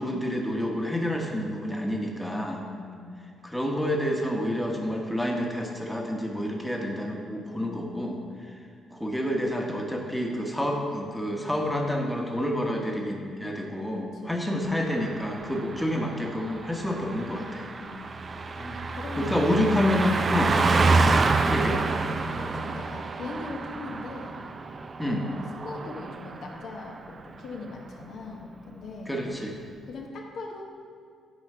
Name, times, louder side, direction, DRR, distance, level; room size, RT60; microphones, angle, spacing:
voice 1, 0.0-2.6 3.4-8.2 8.9-17.7 18.6-18.8 19.2-20.8 21.5-21.8 25.0-25.2 29.1-29.6, left 1 dB, 5° left, 0 dB, 1.2 m, -28 dB
voice 2, 1.8-3.4 7.5-8.4 13.9-14.6 15.4-15.9 17.8-18.3 18.9-19.7 22.2-24.4 25.1-29.1 29.8-30.6, left 3 dB, 70° left, 0 dB, 1.1 m, -41 dB
Car passing by, 14.7-26.7 27.0-27.2, right 3 dB, 40° right, 0.5 m, -28 dB
9.5 x 4.4 x 5.5 m, 2.2 s
cardioid pair, 80°, 0 cm